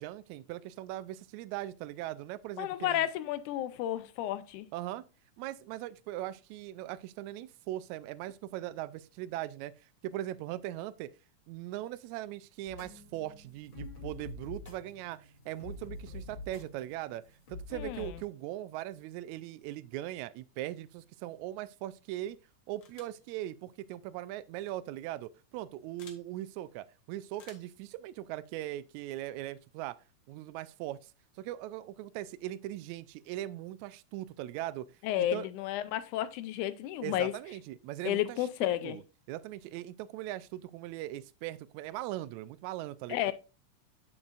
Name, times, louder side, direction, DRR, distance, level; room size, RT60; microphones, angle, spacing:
voice 1, 0.0-3.1 4.7-5.0 5.4-11.1 11.5-17.2 17.5-22.4 22.7-30.0 30.3-31.1 31.4-35.5 37.0-38.4 38.8-39.0 39.3-43.3, right 14 dB, 80° right, 1.7 m, -40 dB
voice 2, 2.6-4.7 17.7-18.2 35.0-37.3 38.1-39.0 43.1-43.3, left 13 dB, 80° left, 2.0 m, -32 dB
sound 1, 12.7-18.2, left 3 dB, 40° left, 2.9 m, -46 dB
sound 2, 22.8-23.2 24.5-24.7 26.0-26.2 27.3-27.8, left 6 dB, 60° left, 1.2 m, -55 dB
7.9 x 7.5 x 2.5 m
omnidirectional pair, 3.7 m